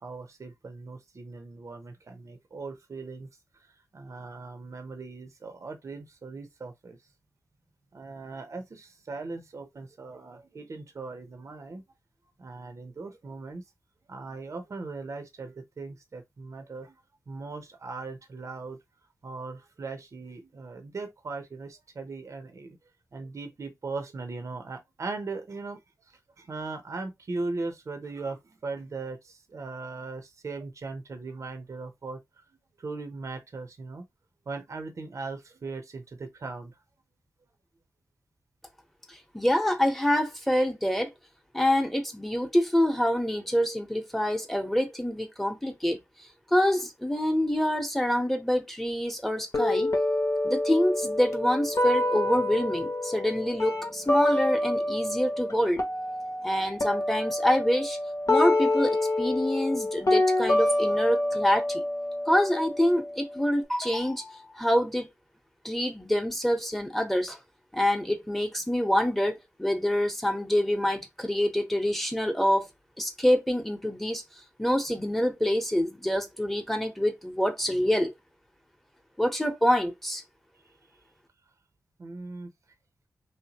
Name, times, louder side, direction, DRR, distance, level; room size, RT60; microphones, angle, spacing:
voice 1, 0.0-3.3 3.5-7.1 7.9-11.8 12.4-13.6 14.1-18.8 19.2-34.1 34.5-36.8 80.6-80.8 82.0-82.5, right 3 dB, 50° right, 0.6 m, -39 dB
voice 2, 39.1-41.1 41.5-46.0 46.5-49.9 50.4-55.8 56.4-58.0 58.3-61.8 62.2-65.1 65.6-67.4 67.7-72.7 73.0-74.2 74.6-78.1 79.2-80.2, left 1 dB, 5° left, 1.0 m, -26 dB
sound 1, 49.5-55.5 55.8-63.6, left 1 dB, 55° left, 1.0 m, -27 dB
3.2 x 2.8 x 2.9 m
wide cardioid pair, 95°, 6 cm